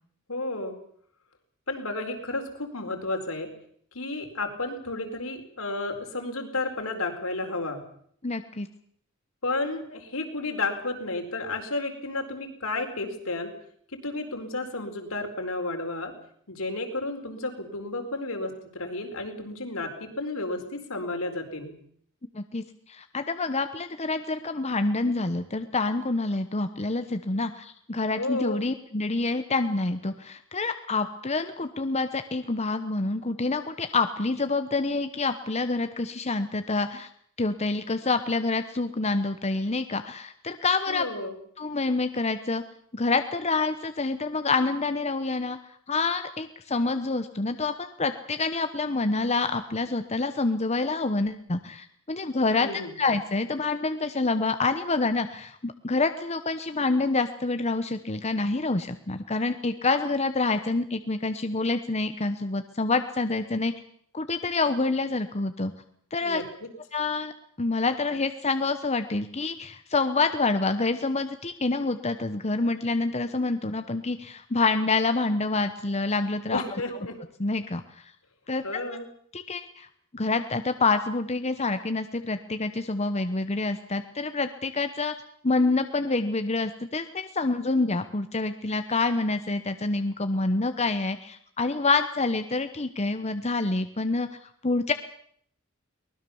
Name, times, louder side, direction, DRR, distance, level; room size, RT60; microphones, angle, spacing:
voice 1, 0.3-0.7 1.7-3.5 3.9-7.8 9.4-13.5 14.0-16.1 16.5-21.8 28.2-28.6 40.9-41.4 52.5-53.0 66.2-66.7 76.5-77.2 78.6-79.1, left 2 dB, 75° left, 4 dB, 4.4 m, -32 dB
voice 2, 8.2-8.7 22.3-37.1 37.4-41.0 41.6-42.6 42.9-45.6 45.9-63.7 64.1-65.7 66.1-66.4 66.9-67.3 67.6-76.8 77.4-78.0 78.5-78.6 79.3-79.9 80.1-85.1 85.4-94.9, left 3 dB, 30° left, 9 dB, 1.0 m, -27 dB
23.5 x 20.0 x 7.1 m, 0.63 s
head